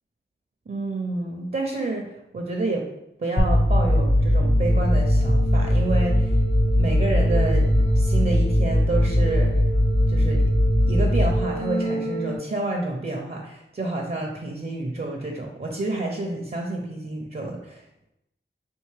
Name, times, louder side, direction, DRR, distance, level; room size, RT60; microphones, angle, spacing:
voice 1, 0.7-2.9 3.2-6.3 6.8-9.6 10.1-10.4 10.8-17.8, right 2 dB, 50° right, 1 dB, 0.6 m, -29 dB
sound 1, 3.4-12.4, equal, 35° left, 0.7 m, -20 dB
4.4 x 2.9 x 3.3 m, 0.84 s
wide cardioid pair, 60°, 20 cm